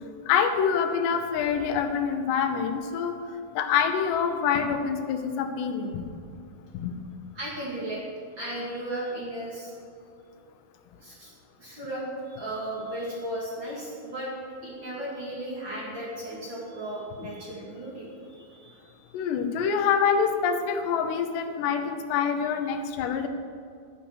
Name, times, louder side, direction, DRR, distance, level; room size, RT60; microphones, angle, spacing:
voice 1, 0.3-6.2 6.7-7.0 19.1-23.3, left 7 dB, 85° left, 7 dB, 3.1 m, -26 dB
voice 2, 7.3-8.0 8.4-9.7 11.0-11.3 11.6-14.3 14.6-19.1, right 1 dB, 35° right, -6 dB, 2.5 m, -35 dB
11.5 x 10.0 x 6.3 m, 2.4 s
omnidirectional pair, 4.8 m